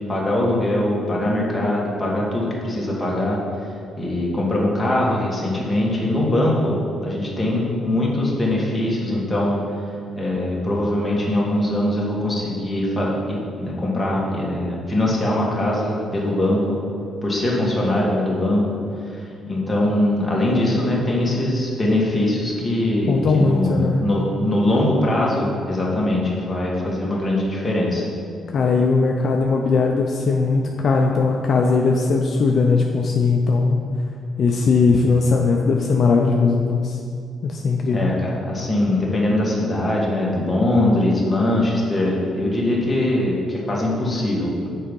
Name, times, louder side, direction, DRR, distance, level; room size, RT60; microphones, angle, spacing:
voice 1, 0.1-3.4 4.0-9.6 10.2-16.8 17.2-18.6 19.1-28.1 37.9-44.7, left 1 dB, 15° left, -4 dB, 1.8 m, -22 dB
voice 2, 23.1-24.0 28.5-33.8 34.4-37.0 37.4-38.1, left 4 dB, 55° left, 1 dB, 0.5 m, -19 dB
6.4 x 4.8 x 5.4 m, 2.3 s
cardioid pair, 90°, 0 cm